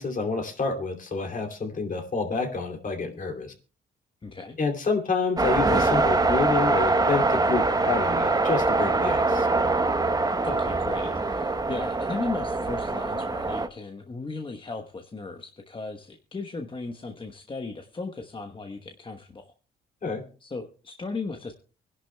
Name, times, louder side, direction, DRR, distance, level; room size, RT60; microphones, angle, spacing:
voice 1, 0.0-3.5 4.6-9.5 20.0-20.2, left 4 dB, 40° left, 4 dB, 2.7 m, -28 dB
voice 2, 4.2-4.6 10.4-19.5 20.4-21.5, left 3 dB, 25° left, 5 dB, 1.1 m, -36 dB
sound 1, 5.4-13.7, right 3 dB, 20° right, 0.9 m, -24 dB
24.0 x 11.0 x 2.2 m, 0.37 s
cardioid pair, 90°, 20 cm